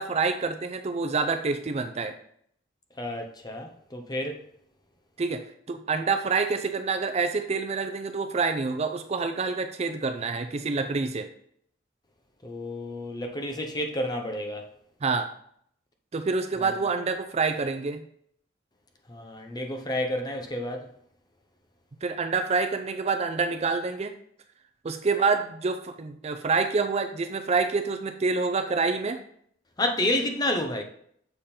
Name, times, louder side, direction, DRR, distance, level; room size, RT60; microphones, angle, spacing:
voice 1, 0.0-2.1 5.2-5.4 5.7-11.3 15.0-15.3 16.1-18.0 22.0-24.1 24.8-29.2, right 4 dB, 35° right, 0.4 m, -27 dB
voice 2, 3.0-4.4 12.4-14.7 16.6-16.7 19.1-20.9 29.8-30.8, left 1 dB, 20° left, 0.7 m, -30 dB
6.8 x 3.6 x 4.3 m
head